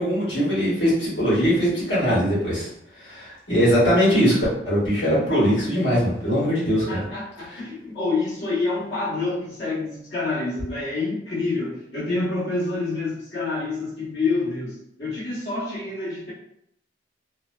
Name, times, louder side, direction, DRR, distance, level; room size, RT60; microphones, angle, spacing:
voice 1, 0.0-2.7 3.0-7.0 7.5-7.6, equal, 85° left, -8 dB, 1.4 m, -21 dB
voice 2, 6.9-16.3, left 3 dB, 70° left, -7 dB, 1.1 m, -27 dB
2.6 x 2.1 x 2.2 m, 0.73 s
head